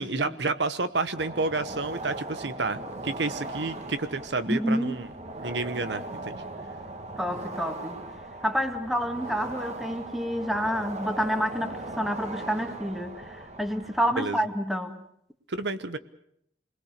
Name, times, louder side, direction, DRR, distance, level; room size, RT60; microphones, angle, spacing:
voice 1, 0.0-5.1 5.4-6.4 14.2-14.4 15.5-16.0, right 3 dB, 75° right, 11 dB, 1.1 m, -30 dB
sound 1, 1.1-14.1, right 2 dB, 40° right, 1.7 m, -39 dB
voice 2, 4.5-5.0 7.2-8.0 8.4-15.0, equal, ahead, 6 dB, 1.8 m, -28 dB
27.0 x 21.0 x 6.7 m, 0.71 s
head